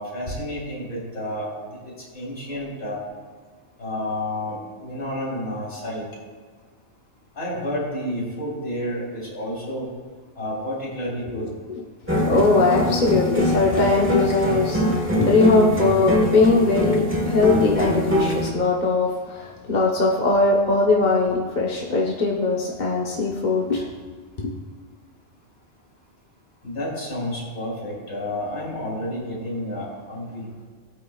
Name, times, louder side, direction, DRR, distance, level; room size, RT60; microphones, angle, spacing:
voice 1, 0.0-1.5 2.1-3.0 3.8-6.1 7.4-9.9 10.4-11.5 26.6-30.5, left 1 dB, 60° left, -4 dB, 3.7 m, -30 dB
Spanish Guitar Loop, 12.1-18.5, equal, 10° right, 1.3 m, -23 dB
voice 2, 12.3-23.9 24.4-24.5, left 3 dB, 40° left, -3 dB, 1.1 m, -20 dB
17.5 x 9.2 x 2.4 m, 1.5 s
omnidirectional pair, 1.3 m